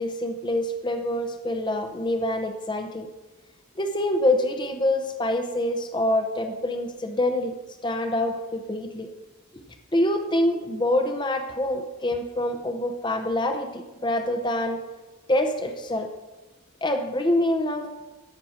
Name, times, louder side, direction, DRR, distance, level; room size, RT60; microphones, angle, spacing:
voice 1, 0.0-3.1 3.8-7.6 7.8-9.1 9.9-14.8 15.3-16.1 16.8-17.9, left 1 dB, 20° left, 5 dB, 0.7 m, -26 dB
13.5 x 6.0 x 4.3 m, 1.2 s
head